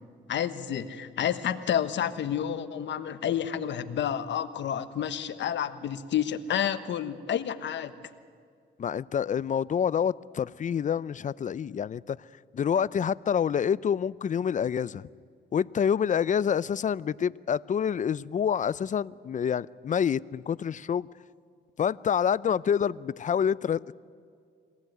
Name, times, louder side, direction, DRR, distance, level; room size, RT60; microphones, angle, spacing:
voice 1, 0.3-7.9, left 9 dB, 65° left, 11 dB, 1.3 m, -30 dB
voice 2, 8.8-12.2 12.5-15.1 15.5-21.1 21.8-24.0, left 8 dB, 40° left, 20 dB, 0.5 m, -27 dB
24.5 x 18.5 x 9.4 m, 2.2 s
cardioid pair, 90°, 20 cm